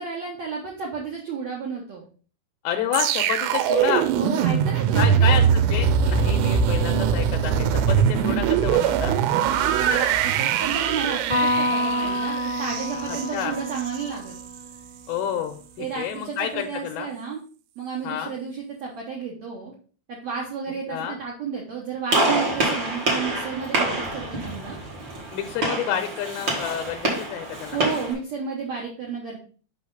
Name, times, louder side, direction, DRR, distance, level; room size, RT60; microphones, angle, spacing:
voice 1, 0.0-2.0 4.1-5.3 7.6-7.8 9.7-14.3 15.8-17.4 17.8-19.7 20.1-24.8 27.7-29.4, right 6 dB, 70° right, -3 dB, 1.6 m, -32 dB
voice 2, 2.6-4.1 4.9-9.2 12.9-13.6 15.1-17.1 18.0-18.3 20.9-21.2 25.3-27.8, left 9 dB, 80° left, 5 dB, 2.3 m, -29 dB
sound 1, 2.9-14.0 14.4-14.6, right 8 dB, 90° right, 2.8 m, -22 dB
Electric guitar, 11.3-14.8, left 1 dB, 25° right, 0.8 m, -27 dB
Gunshot gunfire, 22.1-28.1, right 2 dB, 50° right, 1.4 m, -26 dB
6.0 x 5.7 x 3.8 m, 0.40 s
omnidirectional pair, 4.8 m